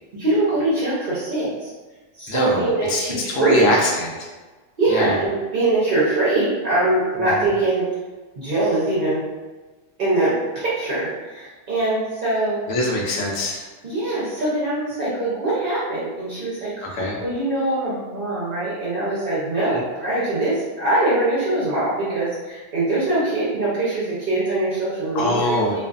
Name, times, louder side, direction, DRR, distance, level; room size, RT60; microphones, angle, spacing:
voice 1, 0.1-1.7 2.1-3.7 4.8-7.8 8.4-9.2 10.0-12.6 13.8-16.8 17.2-25.8, right 2 dB, 50° right, -9 dB, 0.7 m, -22 dB
voice 2, 2.3-3.0 3.3-4.3 4.9-5.2 12.7-13.7 16.8-17.2 19.7-19.8 25.1-25.7, left 1 dB, 75° left, -1 dB, 1.0 m, -23 dB
2.5 x 2.5 x 2.3 m, 1.3 s
omnidirectional pair, 1.4 m